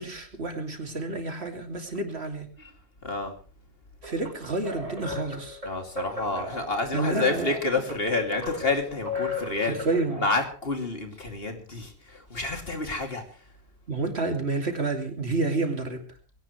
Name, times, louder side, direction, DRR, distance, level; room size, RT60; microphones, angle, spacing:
voice 1, 0.0-2.5 4.0-5.6 6.4-6.5 6.9-7.5 9.6-10.3 13.9-16.0, right 3 dB, 80° right, 4 dB, 2.9 m, -29 dB
voice 2, 3.0-3.3 5.6-9.8 10.2-13.2, left 3 dB, 65° left, 5 dB, 3.0 m, -29 dB
sound 1, 4.0-10.2, left 2 dB, 35° right, 3.6 m, -36 dB
21.0 x 17.5 x 3.2 m, 0.39 s
omnidirectional pair, 1.1 m